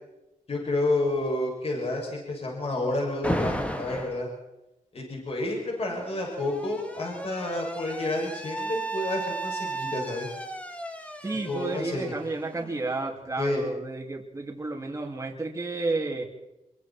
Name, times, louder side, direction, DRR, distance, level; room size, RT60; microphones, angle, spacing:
voice 1, 0.5-4.3 4.9-10.3 11.5-12.2 13.4-13.6, left 2 dB, 45° left, -1 dB, 7.3 m, -30 dB
Alarm, 3.2-4.2 5.4-13.1, right 1 dB, 10° left, 2.1 m, -35 dB
voice 2, 11.2-16.3, right 3 dB, 20° right, 0 dB, 3.2 m, -31 dB
26.0 x 23.0 x 4.6 m, 0.97 s
wide cardioid pair, 135°, 14 cm